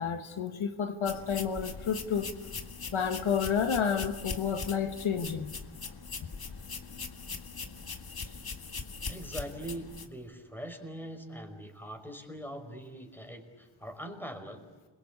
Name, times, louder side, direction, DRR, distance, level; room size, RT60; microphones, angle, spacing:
voice 1, 0.0-2.3 2.9-5.5, left 7 dB, 90° left, 1.7 m, -30 dB
sound 1, 1.1-10.1, left 4 dB, 50° left, 1.9 m, -41 dB
voice 2, 9.1-14.6, right 1 dB, 5° left, 5.3 m, -42 dB
29.0 x 23.0 x 8.6 m
cardioid pair, 65°, 47 cm